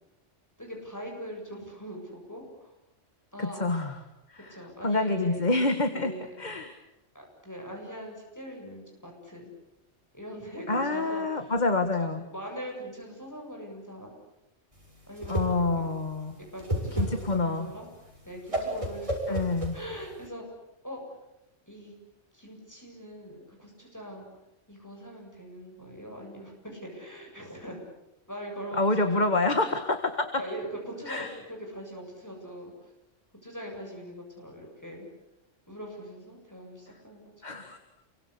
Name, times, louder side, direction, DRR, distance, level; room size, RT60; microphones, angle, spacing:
voice 1, 0.6-2.8 3.3-3.7 4.5-5.4 5.9-6.3 7.1-9.5 10.1-11.5 12.3-14.1 15.1-15.9 16.5-19.4 19.7-20.4 20.8-21.2 21.7-21.9 22.3-24.3 24.7-27.8 28.3-29.4 30.4-32.7 33.4-35.1 35.7-37.3, equal, 15° left, 0 dB, 7.8 m, -41 dB
voice 2, 3.4-4.0 4.3-4.5 4.8-6.7 10.7-12.3 15.3-16.4 17.0-17.7 19.3-19.8 28.7-30.4 31.1-31.3 37.4-37.8, left 2 dB, 35° left, 7 dB, 1.9 m, -27 dB
Whoosh swoosh swish, 14.8-20.3, equal, 25° right, 6.4 m, -32 dB
29.0 x 24.0 x 8.4 m, 0.88 s
omnidirectional pair, 1.3 m